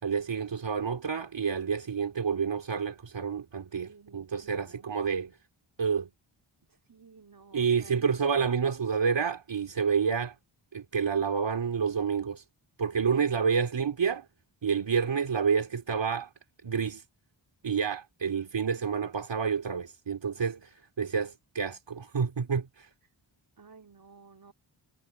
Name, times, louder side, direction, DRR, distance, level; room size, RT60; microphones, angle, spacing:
voice 1, 0.0-5.4 5.8-6.1 7.5-10.4 10.7-12.4 12.8-14.3 14.6-16.3 16.6-17.0 17.6-22.9, right 6 dB, 65° right, 2.5 m, -29 dB
voice 2, 3.7-4.9 6.7-8.1 23.6-24.5, right 4 dB, 45° right, 3.3 m, -53 dB
cardioid pair, 65°, 48 cm